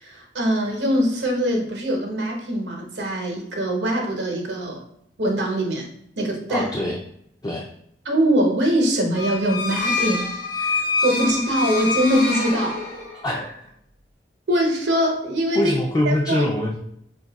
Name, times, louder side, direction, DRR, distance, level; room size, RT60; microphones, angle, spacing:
voice 1, 0.0-4.8 5.2-5.9 6.2-6.7 8.0-10.3 10.6-12.8 14.5-15.7 16.0-16.5, equal, 80° right, 1 dB, 0.8 m, -22 dB
voice 2, 6.5-7.0 7.4-7.7 13.2-13.6 15.5-16.8, left 1 dB, 20° left, -2 dB, 0.4 m, -23 dB
sound 1, 9.1-13.3, left 3 dB, 55° left, 1.0 m, -26 dB
2.6 x 2.3 x 3.9 m, 0.72 s
head